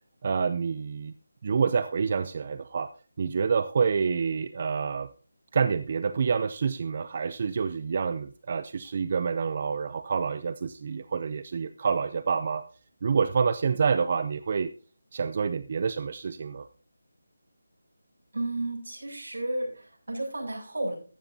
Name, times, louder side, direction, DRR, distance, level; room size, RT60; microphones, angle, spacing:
voice 1, 0.2-1.1 1.4-2.9 3.2-5.1 5.5-12.7 13.0-14.7 15.1-16.7, right 5 dB, 30° right, 12 dB, 0.4 m, -27 dB
voice 2, 18.3-21.0, right 1 dB, 80° right, -2 dB, 6.6 m, -32 dB
14.0 x 10.5 x 2.7 m, 0.36 s
figure-of-eight pair, 175°, 0 cm